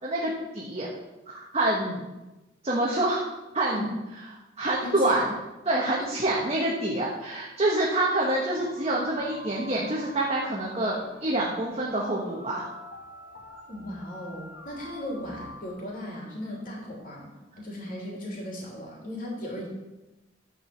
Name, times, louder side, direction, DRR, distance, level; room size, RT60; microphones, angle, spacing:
voice 1, 0.0-0.9 1.3-2.1 2.6-3.3 3.5-3.8 4.6-5.3 5.6-12.7, right 1 dB, 35° right, -3 dB, 1.3 m, -27 dB
voice 2, 4.8-5.2 6.0-6.1 13.7-17.3 17.6-19.7, left 1 dB, 50° left, -3 dB, 3.0 m, -36 dB
sound 1, 8.5-15.7, left 1 dB, 80° left, 1.8 m, -45 dB
11.0 x 4.8 x 6.9 m, 1.0 s
head